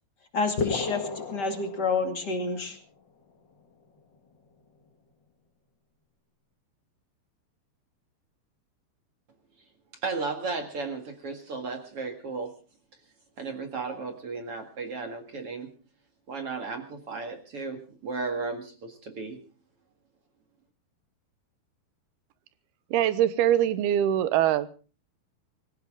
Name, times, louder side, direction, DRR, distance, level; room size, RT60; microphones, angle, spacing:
voice 1, 0.3-2.8, left 4 dB, 30° left, 2.4 m, -29 dB
sound 1, 0.6-2.5, left 3 dB, 45° left, 1.5 m, -33 dB
voice 2, 10.0-12.5 13.4-15.7 16.3-19.4, right 4 dB, 45° right, 2.2 m, -34 dB
voice 3, 22.9-24.7, right 11 dB, 80° right, 2.9 m, -23 dB
23.5 x 16.0 x 3.7 m
omnidirectional pair, 4.5 m